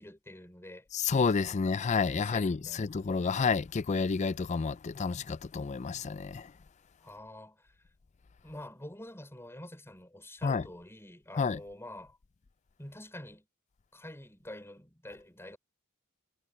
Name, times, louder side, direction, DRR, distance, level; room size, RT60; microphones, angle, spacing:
voice 1, 0.0-0.9 1.5-1.6 2.1-2.9 7.0-7.7 8.4-12.2 12.8-13.5 13.9-15.6, left 1 dB, 10° left, 4.4 m, -47 dB
voice 2, 0.9-6.5 10.4-10.6 11.3-11.6, left 5 dB, 35° left, 0.4 m, -30 dB
head